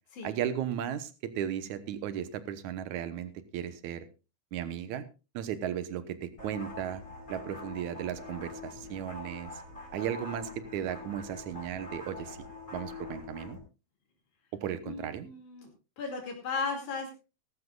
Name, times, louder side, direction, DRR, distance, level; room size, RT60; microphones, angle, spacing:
voice 1, 0.2-4.1 4.5-5.0 5.3-7.0 7.3-9.5 9.9-12.4 12.7-13.6 14.5-15.3, right 10 dB, 80° right, 12 dB, 2.5 m, -35 dB
sound 1, 6.4-13.6, left 3 dB, 25° left, 5.7 m, -44 dB
voice 2, 14.8-15.7 16.0-17.2, left 4 dB, 80° left, 2 dB, 4.0 m, -36 dB
18.0 x 14.5 x 2.4 m, 0.30 s
omnidirectional pair, 3.4 m